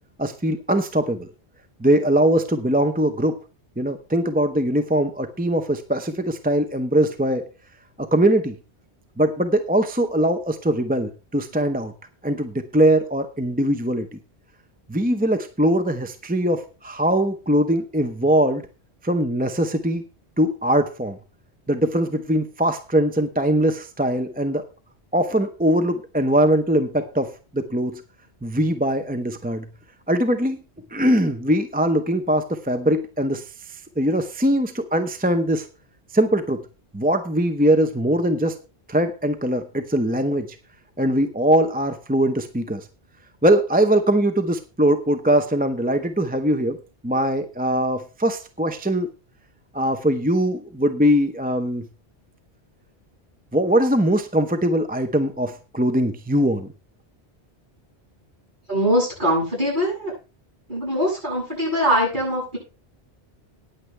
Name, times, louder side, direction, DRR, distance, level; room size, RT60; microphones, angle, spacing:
voice 1, 0.2-1.3 1.8-3.4 3.8-7.4 8.1-8.5 9.2-11.9 12.2-14.2 14.9-18.6 19.0-20.0 20.4-21.2 21.7-24.6 25.1-27.3 27.5-28.0 28.4-29.6 30.1-30.6 30.9-35.7 36.1-36.6 36.9-38.6 38.9-40.5 41.0-42.9 43.4-46.8 47.0-49.1 49.7-51.8 53.5-56.7, right 1 dB, 10° right, 8 dB, 0.7 m, -21 dB
voice 2, 58.7-60.1 60.7-62.6, equal, 45° right, -5 dB, 8.2 m, -22 dB
15.0 x 9.8 x 3.3 m, 0.32 s
omnidirectional pair, 1.1 m